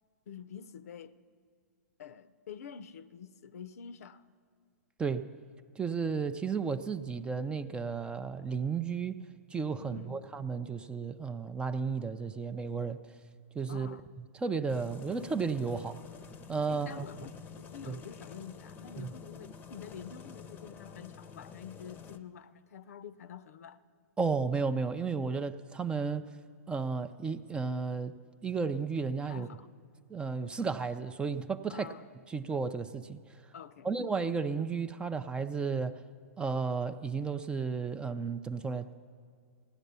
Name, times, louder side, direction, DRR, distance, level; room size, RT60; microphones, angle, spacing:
voice 1, 0.3-1.1 2.0-4.2 9.8-10.2 13.7-14.1 16.7-23.8 29.3-29.7 31.7-32.1 33.5-33.9, left 7 dB, 70° left, 0.6 m, -47 dB
voice 2, 5.8-9.2 9.5-13.0 13.5-13.9 14.4-16.0 16.5-17.1 17.8-18.0 19.0-19.1 24.2-26.3 26.7-28.1 28.4-29.5 30.1-31.9 32.3-33.2 33.8-36.0 36.4-38.9, right 5 dB, 10° right, 0.4 m, -33 dB
sound 1, 14.7-22.2, left 6 dB, 20° left, 0.7 m, -49 dB
16.5 x 10.0 x 6.8 m
hypercardioid pair, 130°, 9 cm